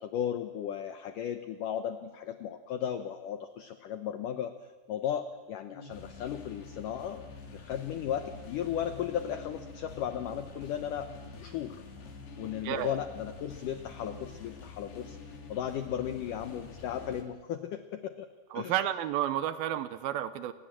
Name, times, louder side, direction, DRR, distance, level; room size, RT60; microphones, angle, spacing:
voice 1, 0.0-4.5 4.9-7.2 7.5-11.1 11.4-11.8 12.4-15.2 15.5-18.3 18.5-18.8, left 9 dB, 90° left, 8 dB, 1.8 m, -35 dB
sound 1, 5.7-17.2, left 4 dB, 65° left, 4.5 m, -47 dB
voice 2, 12.6-13.0 18.5-20.5, right 11 dB, 75° right, 12 dB, 2.3 m, -31 dB
29.0 x 19.5 x 7.6 m, 1.4 s
omnidirectional pair, 5.1 m